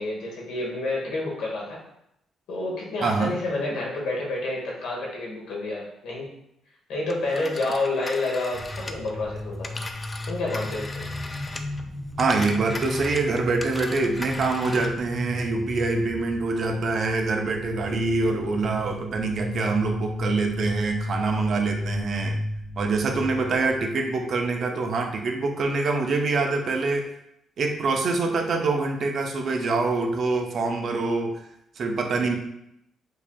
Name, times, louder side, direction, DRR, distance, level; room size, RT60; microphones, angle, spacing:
voice 1, 0.0-1.8 2.5-6.3 6.9-9.8 10.3-11.0, left 2 dB, 85° left, -2 dB, 1.0 m, -29 dB
voice 2, 3.0-3.3 12.2-22.4 22.8-27.1 27.6-31.4 31.8-32.4, right 3 dB, 55° right, 3 dB, 0.5 m, -25 dB
Telephone, 7.1-11.8 12.1-15.0, left 2 dB, 25° left, 0.3 m, -38 dB
sound 1, 8.5-24.4, left 1 dB, 45° left, 0.8 m, -34 dB
4.6 x 2.7 x 2.3 m, 0.77 s
cardioid pair, 90°, 0 cm